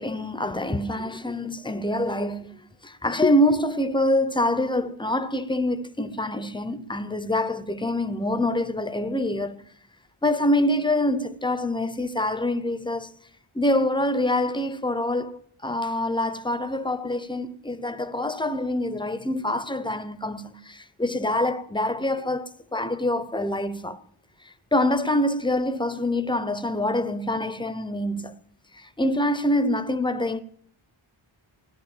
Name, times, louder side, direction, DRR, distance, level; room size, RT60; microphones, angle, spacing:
voice 1, 0.0-9.6 10.2-13.1 13.5-24.0 24.7-28.3 29.0-30.4, left 1 dB, 10° left, 0.7 m, -25 dB
17.0 x 11.0 x 7.2 m
wide cardioid pair, 155°, 49 cm